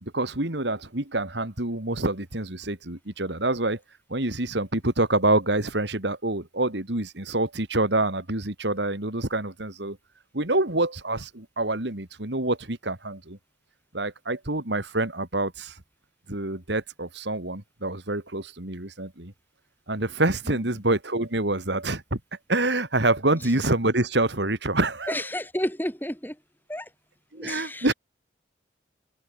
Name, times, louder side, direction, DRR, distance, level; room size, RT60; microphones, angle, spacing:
voice 1, 0.0-3.8 4.1-10.0 10.3-13.4 13.9-15.8 16.3-19.3 19.9-22.2 22.5-25.2 27.3-27.9, right 2 dB, 65° right, 2.9 m, -26 dB
voice 2, 25.1-26.4 26.7-26.9 27.3-27.9, left 1 dB, 10° left, 7.3 m, -31 dB
open air
head